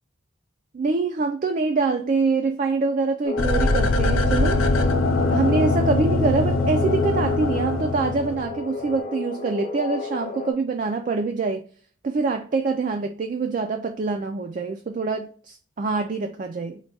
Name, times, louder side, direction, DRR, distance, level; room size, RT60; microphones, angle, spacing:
voice 1, 0.7-4.8 5.3-11.6 12.0-16.8, right 4 dB, 40° right, 5 dB, 0.3 m, -25 dB
sound 1, 3.2-10.5, left 3 dB, 40° left, 1.0 m, -31 dB
sound 2, 3.4-8.6 8.9-9.0, left 2 dB, 80° left, 0.5 m, -22 dB
4.4 x 2.2 x 4.0 m, 0.43 s
head